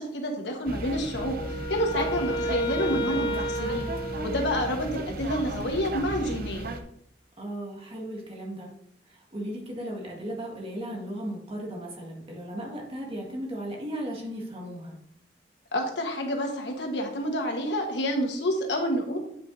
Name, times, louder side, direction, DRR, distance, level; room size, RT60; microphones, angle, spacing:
voice 1, 0.0-1.4 1.7-3.9 4.2-6.7 15.7-19.2, equal, 70° left, 2 dB, 1.3 m, -28 dB
sound 1, 0.7-6.8, right 2 dB, 55° right, 0.7 m, -35 dB
Wind instrument woodwind instrument, 1.1-5.0, equal, 25° left, 0.6 m, -32 dB
voice 2, 7.4-8.7 9.1-15.0, equal, 35° right, -1 dB, 1.7 m, -36 dB
8.9 x 5.5 x 2.6 m, 0.70 s
head